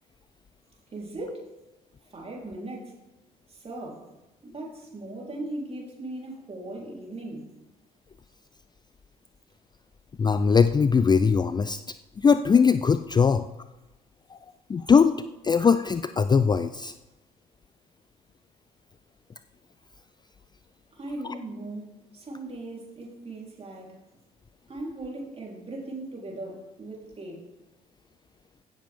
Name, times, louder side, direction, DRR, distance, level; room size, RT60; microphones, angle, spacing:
voice 1, 0.9-1.5 2.1-3.0 3.5-4.1 4.4-7.5 20.9-24.0 24.7-27.5, right 2 dB, 30° right, -1 dB, 3.8 m, -38 dB
voice 2, 10.2-11.8 12.2-13.5 14.7-15.2 15.4-16.9, left 6 dB, 20° left, 12 dB, 0.4 m, -20 dB
16.0 x 7.5 x 3.6 m, 1.0 s
figure-of-eight pair, 50°, 19 cm